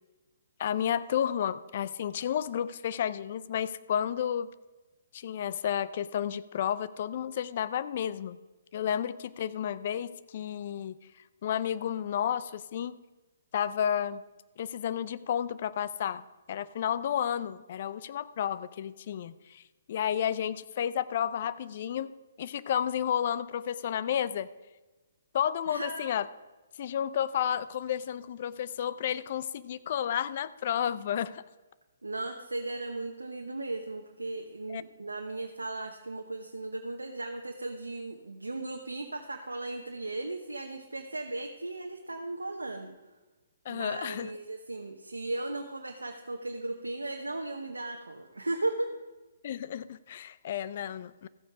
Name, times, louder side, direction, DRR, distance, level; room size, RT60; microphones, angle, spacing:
voice 1, 0.6-4.5 5.1-8.4 8.7-11.0 11.4-13.0 13.5-14.2 14.6-19.6 19.9-22.1 22.4-24.5 25.3-26.3 26.8-31.4 34.7-34.8 43.7-44.3 49.4-51.3, left 9 dB, 50° left, 16 dB, 0.5 m, -31 dB
voice 2, 25.7-26.1 32.0-42.9 43.7-48.9, right 2 dB, 90° right, 3 dB, 0.9 m, -36 dB
14.0 x 8.4 x 5.0 m, 1.2 s
figure-of-eight pair, 130°, 0 cm